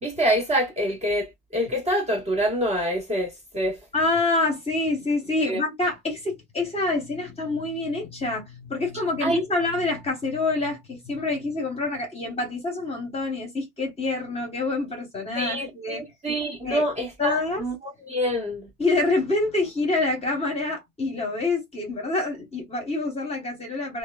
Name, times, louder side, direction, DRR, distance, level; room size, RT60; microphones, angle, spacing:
voice 1, 0.0-3.8 5.5-5.6 9.2-9.4 15.3-18.7, equal, 15° right, 0.9 m, -26 dB
voice 2, 3.9-16.0 16.6-16.8 17.2-17.6 18.8-24.0, left 2 dB, 15° left, 1.0 m, -26 dB
2.9 x 2.1 x 2.2 m
supercardioid pair, 130°, 38 cm